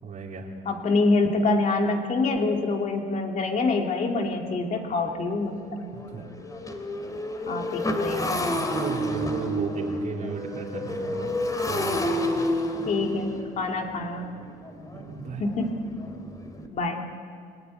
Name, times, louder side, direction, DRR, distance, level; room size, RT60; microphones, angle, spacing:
voice 1, 0.0-0.5 5.9-6.2 8.6-11.4 11.6-12.5 14.9-15.4, right 5 dB, 50° right, -2 dB, 3.3 m, -35 dB
voice 2, 0.7-5.9 7.5-8.6 9.0-9.1 12.9-14.4 15.4-15.8 16.7-17.1, left 3 dB, 45° left, 2 dB, 2.6 m, -26 dB
Motorcycle, 4.0-4.1 4.6-4.8 5.1-16.7, left 1 dB, 20° left, 3.0 m, -30 dB
29.0 x 19.0 x 9.6 m, 2.2 s
cardioid pair, 110°, 17 cm